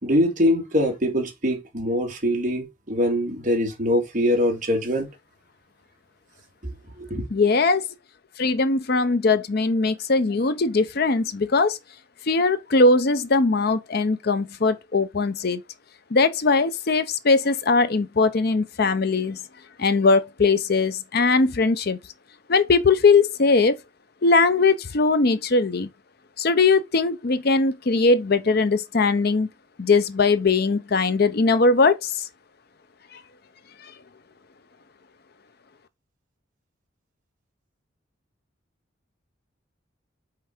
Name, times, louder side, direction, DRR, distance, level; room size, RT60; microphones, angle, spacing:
voice 1, 0.0-5.1 7.0-7.2, equal, 40° right, 2.2 m, -23 dB
voice 2, 7.3-7.8 8.4-11.8 12.3-15.6 16.1-19.4 19.8-22.0 22.5-23.8 24.2-25.9 26.4-29.5 29.8-32.1, left 3 dB, 50° left, 0.6 m, -20 dB
5.8 x 4.6 x 4.3 m
head